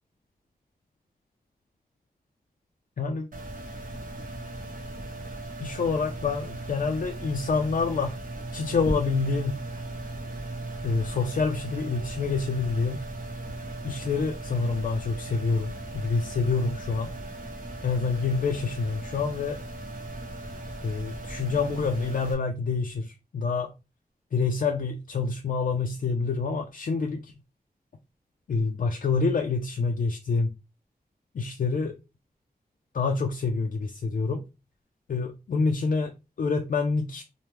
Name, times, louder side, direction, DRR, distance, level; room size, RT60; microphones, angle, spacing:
voice 1, 3.0-3.3 5.6-8.1 8.5-9.6 10.8-13.0 13.8-17.1 17.8-19.6 20.8-23.7 24.3-27.3 28.5-30.5 31.3-31.9 32.9-34.4 35.1-36.1 36.4-37.2, left 4 dB, 60° left, 0.4 m, -27 dB
sound 1, 3.3-22.3, right 2 dB, 55° right, 0.9 m, -37 dB
3.3 x 2.1 x 3.0 m
wide cardioid pair, 70°, 16 cm